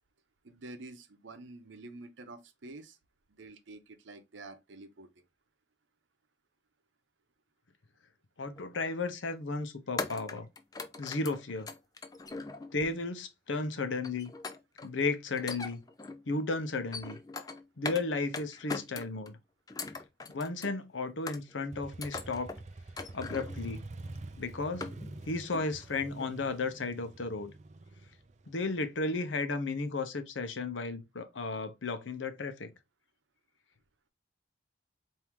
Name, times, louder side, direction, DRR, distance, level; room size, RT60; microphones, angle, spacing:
voice 1, 0.4-3.0 3.4-5.1, right 2 dB, 85° right, 0.8 m, -48 dB
voice 2, 8.4-10.5 11.0-11.7 12.7-14.3 14.8-15.8 16.3-17.2 17.8-19.4 20.3-22.5 23.1-23.8 24.4-24.9 25.2-27.5 28.5-32.7, left 3 dB, 85° left, 0.8 m, -34 dB
sound 1, 8.6-8.8 10.0-12.9 14.0-14.9 15.3-16.2 16.7-18.1 18.3-19.3 19.7-20.8 21.3-21.7 22.0-22.6 23.0-23.6 24.1-24.2 24.5-25.3 25.5-25.8 26.2-26.3, left 4 dB, 20° left, 0.4 m, -41 dB
Motorcycle, 21.7-29.4, right 2 dB, 40° right, 0.4 m, -46 dB
4.5 x 2.7 x 3.5 m
head